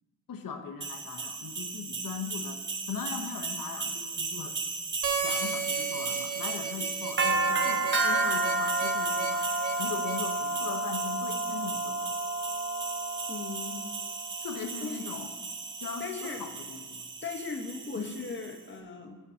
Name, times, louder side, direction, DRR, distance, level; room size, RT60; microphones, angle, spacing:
voice 1, 0.3-4.6 5.2-9.5 9.8-12.1 14.4-15.3 15.8-17.0 18.0-18.3, left 6 dB, 60° left, 6 dB, 1.0 m, -40 dB
sound 1, 0.8-18.5, right 3 dB, 30° right, 0.8 m, -32 dB
Harmonica, 5.0-10.3, right 6 dB, 50° right, 1.0 m, -34 dB
voice 2, 13.3-13.9 14.8-15.0 16.0-16.4 17.2-19.2, left 4 dB, 30° left, 2 dB, 1.1 m, -38 dB
17.5 x 7.0 x 2.8 m, 1.3 s
wide cardioid pair, 165°, 37 cm